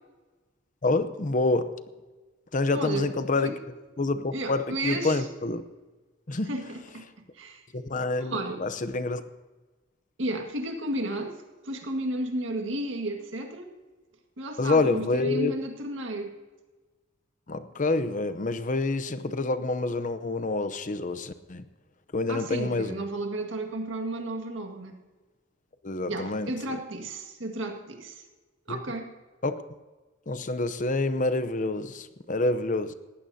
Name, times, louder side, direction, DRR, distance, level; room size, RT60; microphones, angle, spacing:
voice 1, 0.8-1.8 2.5-3.6 4.0-5.6 6.3-6.5 7.7-9.3 14.6-15.5 17.5-21.7 22.1-23.0 25.8-26.8 28.7-28.8 29.4-29.6 30.3-32.9, left 2 dB, 40° left, 12 dB, 0.7 m, -27 dB
voice 2, 2.7-3.1 3.4-3.6 4.3-5.2 6.5-7.1 7.3-7.7 8.2-8.6 10.2-13.7 14.4-16.4 22.3-25.0 26.1-28.2 28.7-29.1, right 1 dB, 85° right, 4 dB, 1.9 m, -33 dB
19.5 x 15.0 x 2.8 m, 1.3 s
head